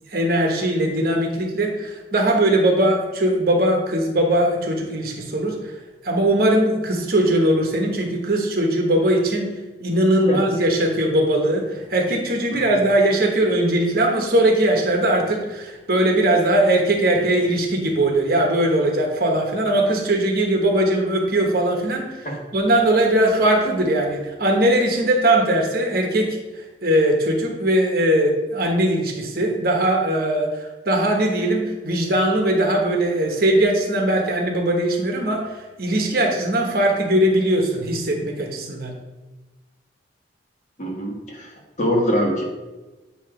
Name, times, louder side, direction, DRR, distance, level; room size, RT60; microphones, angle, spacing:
voice 1, 0.1-5.7 6.0-9.5 9.8-22.2 22.5-26.4 26.8-38.9, right 1 dB, 55° right, 1 dB, 1.1 m, -20 dB
voice 2, 40.8-42.4, equal, 40° left, -1 dB, 1.4 m, -23 dB
8.6 x 2.9 x 4.9 m, 1.1 s
head